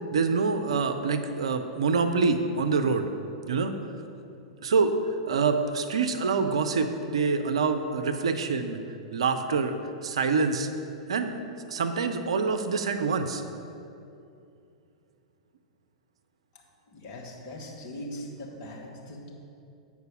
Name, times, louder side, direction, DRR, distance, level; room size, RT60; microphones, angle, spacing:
voice 1, 0.1-3.1 3.5-3.7 4.6-4.9 5.3-8.8 9.1-9.7 10.0-10.7 11.1-11.4 11.7-13.4, right 4 dB, 65° right, 8 dB, 0.5 m, -26 dB
voice 2, 16.9-19.3, left 1 dB, 40° left, -1 dB, 1.5 m, -40 dB
8.0 x 4.8 x 5.3 m, 2.6 s
figure-of-eight pair, 95°, 3 cm